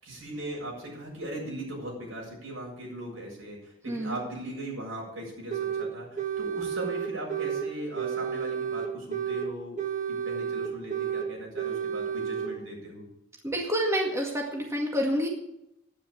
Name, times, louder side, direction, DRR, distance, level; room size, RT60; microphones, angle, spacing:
voice 1, 0.0-9.8 10.1-13.1, right 1 dB, 85° right, -2 dB, 7.4 m, -39 dB
sound 1, 5.5-5.9 6.2-7.7 8.0-9.5 9.8-11.3 11.6-12.5, right 7 dB, 40° right, 1.7 m, -31 dB
voice 2, 13.4-15.3, equal, 15° right, 0 dB, 2.0 m, -28 dB
10.0 x 9.8 x 8.9 m, 0.82 s
head